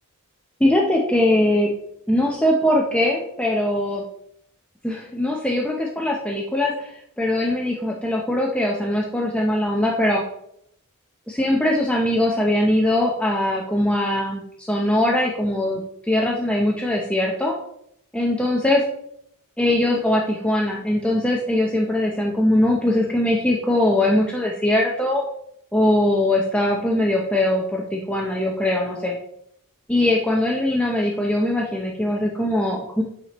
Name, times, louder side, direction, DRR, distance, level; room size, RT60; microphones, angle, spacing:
voice 1, 0.6-1.7 2.1-4.0 4.8-10.2 11.3-17.5 18.1-18.8 19.6-25.2 25.7-29.2 29.9-33.0, left 1 dB, 5° left, -2 dB, 0.6 m, -21 dB
8.8 x 4.4 x 2.9 m, 0.74 s
head